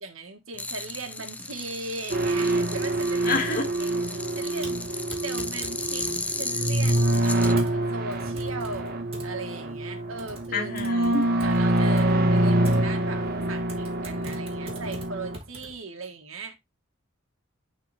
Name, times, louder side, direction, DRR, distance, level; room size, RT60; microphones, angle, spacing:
voice 1, 0.0-3.3 3.8-6.1 6.3-10.8 11.4-16.6, right 3 dB, 85° right, 1.5 m, -38 dB
sound 1, 0.5-7.5, left 3 dB, 5° left, 0.4 m, -35 dB
sound 2, 2.1-15.4, right 1 dB, 50° right, 1.4 m, -26 dB
voice 2, 3.2-3.7 10.5-11.3, left 3 dB, 45° left, 2.0 m, -27 dB
Typing, 4.6-15.8, right 2 dB, 30° right, 2.6 m, -45 dB
11.0 x 4.1 x 3.3 m
head